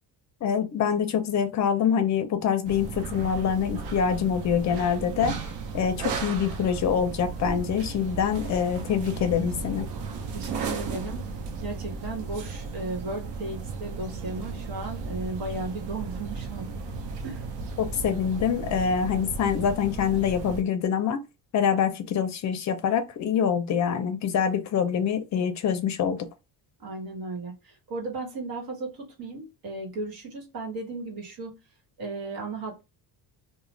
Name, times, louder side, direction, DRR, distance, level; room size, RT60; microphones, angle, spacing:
voice 1, 0.4-5.3 5.7-9.9 17.8-21.2 21.5-26.3, left 7 dB, 40° left, 0.5 m, -25 dB
sound 1, 2.6-20.6, right 4 dB, 70° right, 0.8 m, -35 dB
voice 2, 10.3-11.2 11.6-16.7 17.2-17.4 26.8-31.6 32.0-32.8, right 2 dB, 55° right, 1.3 m, -35 dB
2.4 x 2.2 x 3.1 m
cardioid pair, 130°, 44 cm